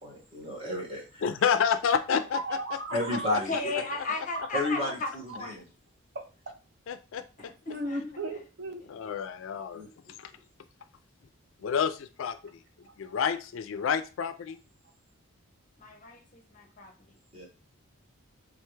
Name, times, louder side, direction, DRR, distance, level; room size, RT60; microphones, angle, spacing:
voice 1, 0.0-1.2 2.9-3.7 4.1-4.2 4.5-5.7 9.7-9.9 17.3-17.5, left 1 dB, 25° right, -4 dB, 1.6 m, -33 dB
voice 2, 1.2-2.4 6.9-7.5 8.9-9.8 10.2-10.3 11.6-14.6, left 7 dB, 65° left, 11 dB, 0.3 m, -29 dB
voice 3, 2.3-3.3 4.3-4.5 5.3-5.4 6.1-6.5 7.7-8.8 12.9-13.0, right 2 dB, 50° right, 6 dB, 0.5 m, -36 dB
voice 4, 3.3-5.1 5.4-5.6 7.4-8.4 15.8-17.2, left 3 dB, 35° left, 4 dB, 0.7 m, -35 dB
3.8 x 3.3 x 3.2 m, 0.33 s
head